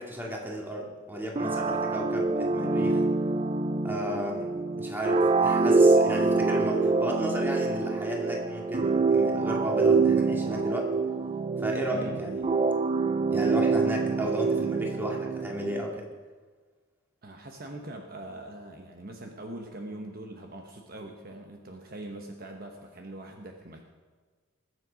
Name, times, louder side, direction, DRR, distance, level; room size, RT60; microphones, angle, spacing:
voice 1, 0.0-3.0 3.8-4.5 4.8-10.9 11.6-12.5 13.3-16.0, right 1 dB, 10° right, -1 dB, 2.1 m, -33 dB
sound 1, 1.4-15.9, right 3 dB, 30° right, 0.5 m, -25 dB
voice 2, 11.8-12.2 17.2-23.8, right 1 dB, 45° right, 3 dB, 1.1 m, -42 dB
20.0 x 7.6 x 5.2 m, 1.5 s
head